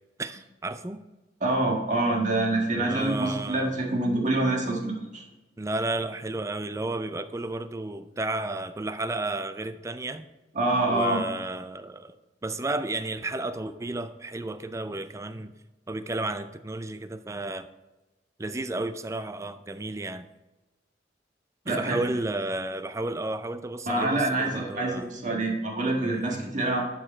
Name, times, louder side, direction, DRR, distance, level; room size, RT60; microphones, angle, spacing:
voice 1, 0.2-1.0 2.8-3.7 5.6-10.3 10.9-12.1 12.4-15.5 15.9-17.7 18.4-20.3 21.7-25.1 26.0-26.5, right 2 dB, 15° right, 11 dB, 0.4 m, -32 dB
voice 2, 1.4-5.2 10.5-11.2 21.7-22.0 23.9-26.8, right 2 dB, 45° right, -1 dB, 1.6 m, -26 dB
11.0 x 4.9 x 4.4 m, 1.1 s
head